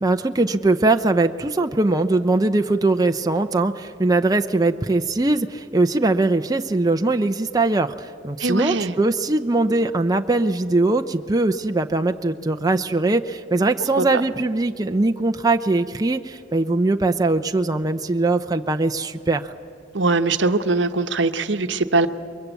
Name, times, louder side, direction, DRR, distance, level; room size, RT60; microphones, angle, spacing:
voice 1, 0.0-19.4, right 2 dB, 20° right, 6 dB, 0.6 m, -21 dB
voice 2, 8.4-8.9 14.0-14.1 19.9-22.1, right 3 dB, 70° right, 9 dB, 1.0 m, -21 dB
29.0 x 23.0 x 8.2 m, 2.3 s
head